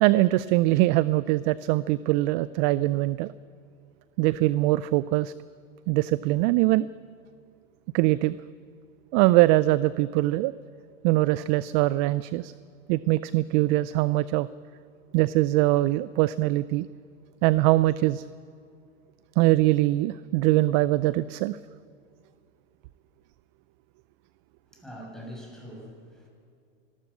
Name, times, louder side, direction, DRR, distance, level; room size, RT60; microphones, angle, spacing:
voice 1, 0.0-3.3 4.2-5.3 5.9-6.9 7.9-8.4 9.1-10.5 11.0-12.5 12.9-14.5 15.1-16.9 17.4-18.2 19.4-21.6, right 18 dB, 40° right, 18 dB, 0.4 m, -22 dB
voice 2, 24.7-26.3, equal, ahead, -2 dB, 6.5 m, -43 dB
25.0 x 13.0 x 8.4 m, 2.4 s
hypercardioid pair, 115°, 39 cm